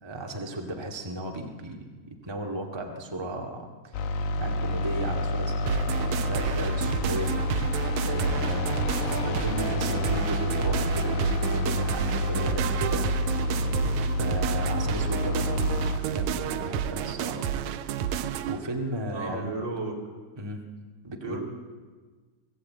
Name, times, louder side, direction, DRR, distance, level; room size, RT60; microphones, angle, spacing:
voice 1, 0.0-7.3 8.0-13.1 14.2-17.4 18.5-19.5 20.4-20.6 21.0-21.4, right 1 dB, 45° right, 2 dB, 0.3 m, -35 dB
sound 1, 3.9-16.0, left 2 dB, 70° left, 2.8 m, -28 dB
sound 2, 5.7-18.6, right 9 dB, 85° right, 1.6 m, -30 dB
voice 2, 9.0-9.4 19.1-20.0 21.2-21.4, right 3 dB, 30° right, 0 dB, 3.9 m, -35 dB
24.5 x 17.0 x 8.7 m, 1.4 s
omnidirectional pair, 4.6 m